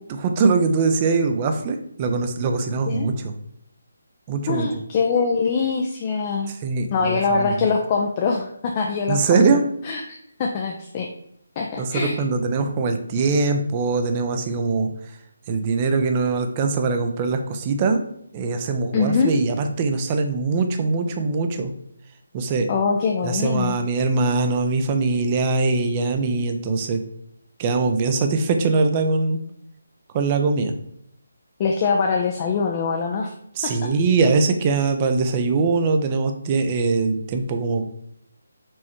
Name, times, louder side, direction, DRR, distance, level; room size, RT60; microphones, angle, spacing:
voice 1, 0.1-3.3 4.3-4.7 6.6-7.7 9.1-9.6 11.8-14.9 15.5-18.0 18.3-21.7 22.3-22.7 23.2-27.0 27.6-29.4 30.1-30.7 33.6-37.8, right 4 dB, 25° right, 6 dB, 0.5 m, -22 dB
voice 2, 4.5-6.5 6.9-9.4 9.8-11.1 11.6-12.2 18.9-19.4 22.7-23.8 31.6-33.3 33.6-33.9, left 5 dB, 30° left, 1 dB, 0.4 m, -23 dB
4.3 x 3.2 x 3.0 m, 0.71 s
figure-of-eight pair, 155°, 0 cm